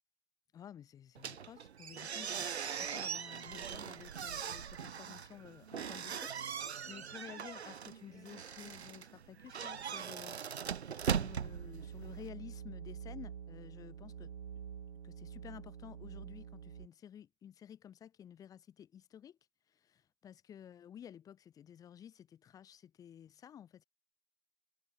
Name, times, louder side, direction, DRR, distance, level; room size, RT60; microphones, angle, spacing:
voice 1, 0.5-10.7 11.0-14.3 15.0-19.4 19.8-23.8, left 9 dB, 10° left, 2.7 m, -53 dB
sound 1, 1.2-12.3, right 7 dB, 75° right, 1.4 m, -40 dB
sound 2, 11.0-16.9, right 8 dB, 60° right, 2.8 m, -47 dB
hypercardioid pair, 155°, 32 cm